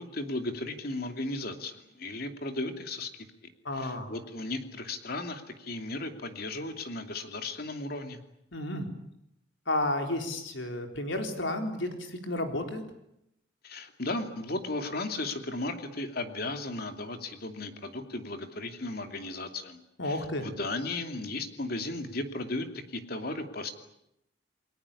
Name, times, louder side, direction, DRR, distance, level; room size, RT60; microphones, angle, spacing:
voice 1, 0.0-3.1 3.7-8.2 13.6-23.7, left 2 dB, 50° left, 7 dB, 2.7 m, -35 dB
voice 2, 3.6-4.2 8.5-8.9 9.7-12.8 20.0-20.5, left 1 dB, 70° left, 5 dB, 4.1 m, -32 dB
29.5 x 21.0 x 8.5 m, 0.80 s
head